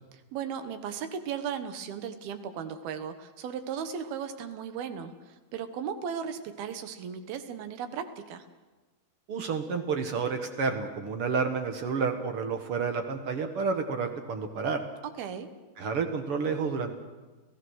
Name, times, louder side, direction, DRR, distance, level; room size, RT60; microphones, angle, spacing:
voice 1, 0.3-8.5 15.2-15.5, right 7 dB, 75° right, 9 dB, 3.1 m, -36 dB
voice 2, 9.3-14.8 15.8-17.0, right 5 dB, 55° right, 5 dB, 1.6 m, -30 dB
30.0 x 15.5 x 6.4 m, 1.2 s
omnidirectional pair, 4.4 m